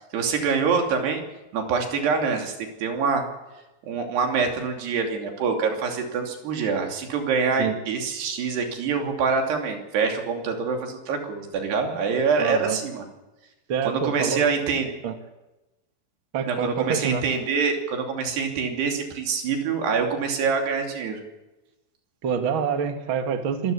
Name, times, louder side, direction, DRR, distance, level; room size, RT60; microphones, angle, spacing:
voice 1, 0.1-1.2 1.5-2.5 2.8-3.3 3.9-13.1 13.8-14.9 16.5-21.2, right 5 dB, 85° right, 3 dB, 5.0 m, -25 dB
voice 2, 12.4-12.8 13.7-14.4 15.0-15.1 16.3-17.2 22.2-23.7, right 7 dB, 45° right, 6 dB, 1.7 m, -26 dB
24.5 x 14.0 x 8.5 m, 1.0 s
omnidirectional pair, 4.6 m